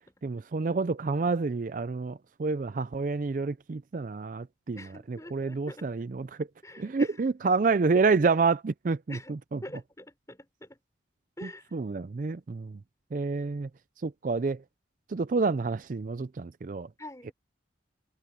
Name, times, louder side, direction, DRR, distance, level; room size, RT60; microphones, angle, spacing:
voice 1, 0.2-6.5 6.8-9.6 11.4-12.8 13.1-13.7 14.0-14.6 15.1-16.9, right 4 dB, 45° right, 0.4 m, -28 dB
voice 2, 4.7-5.8 6.6-7.1 9.1-9.3 9.6-10.8 11.4-11.6 17.0-17.3, left 1 dB, 15° left, 6.1 m, -45 dB
head